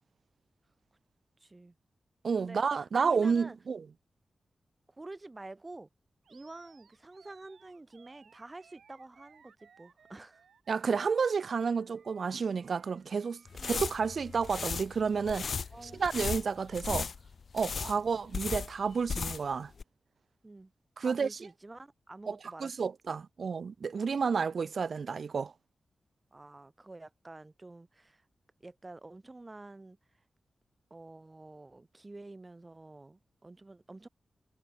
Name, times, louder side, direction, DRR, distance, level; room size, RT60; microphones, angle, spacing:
voice 1, 1.4-1.7 2.4-3.6 4.9-5.9 6.3-10.4 13.6-13.8 15.7-16.1 17.8-18.0 20.4-20.7 21.0-22.8 23.1-23.2 24.1-24.2 26.3-28.2 28.6-30.0 30.9-34.1, right 2 dB, 20° right, 2.2 m, -49 dB
voice 2, 2.2-3.8 10.7-15.5 16.0-17.1 17.5-19.7 21.0-21.3 22.3-22.4 22.6-25.5, right 5 dB, 60° right, 0.5 m, -30 dB
Animal, 6.2-14.4, right 7 dB, 90° right, 7.5 m, -63 dB
sound 1, 13.5-19.5 19.8-19.9, left 5 dB, 60° left, 0.6 m, -36 dB
wide cardioid pair, 155°, 0 cm